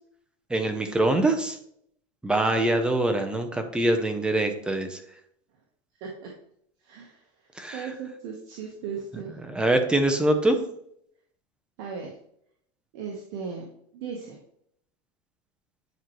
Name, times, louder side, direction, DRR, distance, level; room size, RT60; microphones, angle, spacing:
voice 1, 0.5-1.6 2.2-5.0 7.6-7.8 9.4-10.6, right 1 dB, 5° right, 6 dB, 0.6 m, -24 dB
voice 2, 6.8-7.2 7.7-9.4 11.8-12.1 12.9-14.4, right 6 dB, 55° right, -1 dB, 1.3 m, -37 dB
9.1 x 4.4 x 3.1 m, 0.69 s
supercardioid pair, 160°, 17 cm